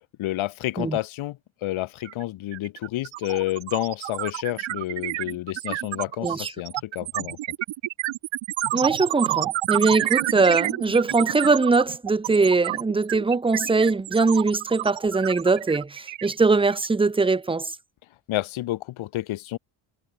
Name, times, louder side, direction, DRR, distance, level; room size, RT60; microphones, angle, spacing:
voice 1, 0.2-7.4 18.3-19.6, left 15 dB, 75° left, 1.8 m, -30 dB
sound 1, 2.1-2.2 2.5-16.9, right 15 dB, 70° right, 1.3 m, -29 dB
voice 2, 8.7-17.7, right 3 dB, 10° right, 0.8 m, -21 dB
supercardioid pair, 75°, 48 cm